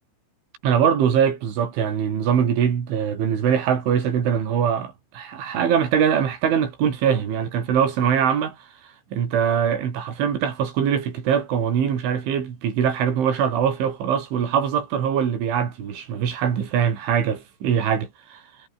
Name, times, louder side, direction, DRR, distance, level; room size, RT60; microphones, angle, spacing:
voice 1, 0.6-8.6 9.1-18.4, right 8 dB, 80° right, 6.2 m, -22 dB
omnidirectional pair, 5.4 m